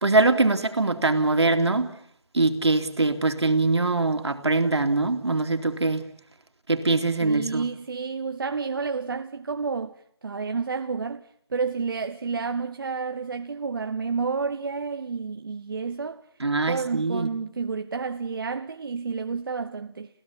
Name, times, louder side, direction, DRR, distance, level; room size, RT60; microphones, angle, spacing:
voice 1, 0.0-1.9 2.3-6.0 6.7-7.7 16.4-17.3, right 3 dB, 80° right, 2.9 m, -23 dB
voice 2, 7.2-16.2 16.7-20.1, right 5 dB, 55° right, 1.0 m, -30 dB
28.0 x 16.0 x 8.6 m
figure-of-eight pair, 165°, 14 cm